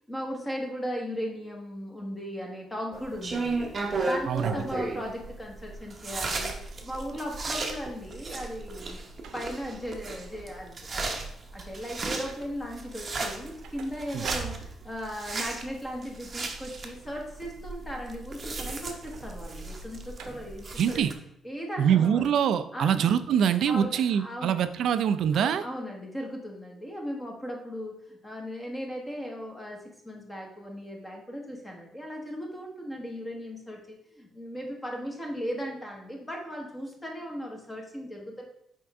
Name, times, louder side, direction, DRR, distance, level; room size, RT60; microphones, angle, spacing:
voice 1, 0.0-6.6 6.8-9.0 9.3-21.1 21.4-22.3 22.7-23.1 23.7-24.6 25.3-38.4, equal, 10° left, 0 dB, 1.1 m, -37 dB
sound 1, 2.9-21.1, right 3 dB, 25° right, 0.8 m, -35 dB
sound 2, 8.2-8.6 9.2-9.7 10.3-10.7 11.0-11.5 13.2-15.1 18.9-19.5 20.1-20.7 21.5-21.6, right 6 dB, 80° right, 0.8 m, -43 dB
voice 2, 20.8-21.1 21.8-25.6, right 8 dB, 60° right, 11 dB, 0.4 m, -24 dB
6.1 x 4.5 x 4.7 m, 0.76 s
cardioid pair, 175°, 0 cm